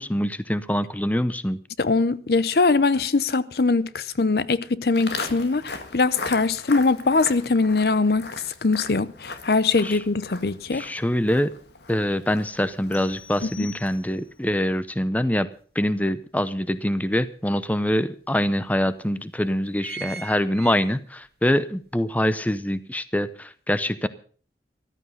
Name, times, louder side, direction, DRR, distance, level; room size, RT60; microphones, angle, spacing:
voice 1, 0.0-1.6 9.8-10.0 10.7-11.5 11.9-15.5 15.7-24.1, left 1 dB, 10° left, 0.6 m, -24 dB
voice 2, 1.8-8.3 8.6-10.8 13.4-13.7, left 3 dB, 60° left, 0.6 m, -22 dB
Walk footsteps, 4.9-14.2, left 3 dB, 75° left, 1.9 m, -38 dB
sound 1, 12.9-14.4, left 7 dB, 40° left, 1.7 m, -46 dB
sound 2, 15.6-15.7 16.1-17.3 17.9-18.0 18.3-18.4 19.0-19.3 19.5-21.3 21.8-21.9, right 5 dB, 60° right, 1.2 m, -40 dB
14.5 x 13.5 x 5.5 m
head